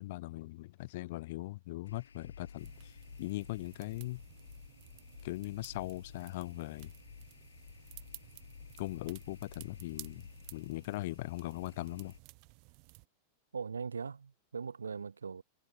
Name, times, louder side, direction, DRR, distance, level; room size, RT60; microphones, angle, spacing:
voice 1, 0.0-2.9 3.2-4.2 5.2-6.9 8.8-12.1, left 18 dB, 50° left, 0.3 m, -40 dB
sound 1, 1.8-12.2, left 6 dB, 70° left, 2.9 m, -53 dB
sound 2, 2.6-13.1, right 40 dB or more, 45° right, 0.8 m, -56 dB
voice 2, 13.5-15.4, right 5 dB, 75° right, 0.5 m, -40 dB
figure-of-eight pair, 90°, 0 cm